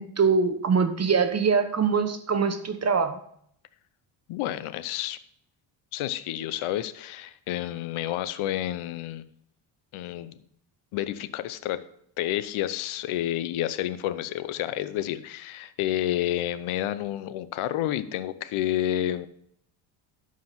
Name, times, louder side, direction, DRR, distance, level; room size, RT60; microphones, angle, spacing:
voice 1, 0.0-3.2, right 5 dB, 30° right, 7 dB, 1.0 m, -23 dB
voice 2, 4.3-5.2 5.9-9.2 9.9-10.4 10.9-11.8 12.2-19.3, left 12 dB, 80° left, 15 dB, 0.8 m, -30 dB
11.5 x 5.0 x 5.8 m, 0.68 s
cardioid pair, 95°, 49 cm